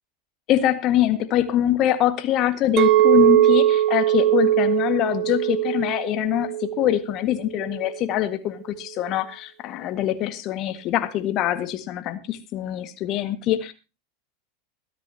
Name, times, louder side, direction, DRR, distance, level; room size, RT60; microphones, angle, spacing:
voice 1, 0.5-13.7, left 12 dB, 45° left, 11 dB, 1.7 m, -24 dB
Chink clink, 2.8-7.1 7.6-7.9, right 13 dB, 45° right, 1.1 m, -20 dB
23.0 x 10.5 x 2.8 m, 0.29 s
hypercardioid pair, 90°, 0 cm